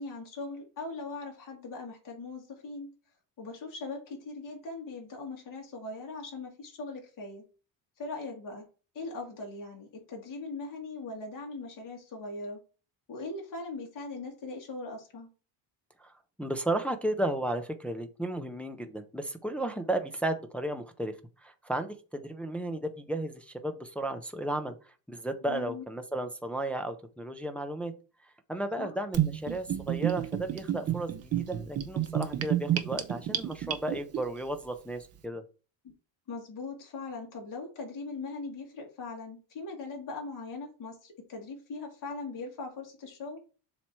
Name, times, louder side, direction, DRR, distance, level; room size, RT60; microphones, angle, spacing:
voice 1, 0.0-2.9 3.4-7.4 8.0-8.6 8.9-12.6 13.1-15.3 25.5-25.8 28.8-28.9 36.3-43.4, left 3 dB, 45° left, -1 dB, 2.1 m, -40 dB
voice 2, 16.4-21.1 21.4-24.7 25.1-27.9 28.5-35.4, right 1 dB, 5° left, 6 dB, 0.3 m, -34 dB
Gurgling / Bathtub (filling or washing), 29.1-34.2, right 11 dB, 35° right, 0.7 m, -30 dB
7.2 x 3.1 x 4.5 m, 0.35 s
cardioid pair, 160°, 43 cm